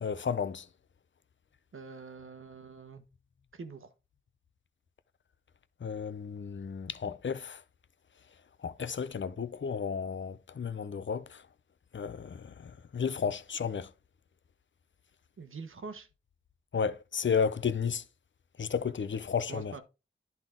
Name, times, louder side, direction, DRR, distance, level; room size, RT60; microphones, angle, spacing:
voice 1, 0.0-0.7 5.8-7.6 8.6-11.4 11.9-13.9 16.7-18.0 18.6-19.7, left 6 dB, 65° left, 0.7 m, -33 dB
voice 2, 1.7-3.0 3.5-3.9 15.4-16.1 19.5-19.8, right 4 dB, 80° right, 1.1 m, -45 dB
10.5 x 4.1 x 3.7 m
cardioid pair, 50°, 21 cm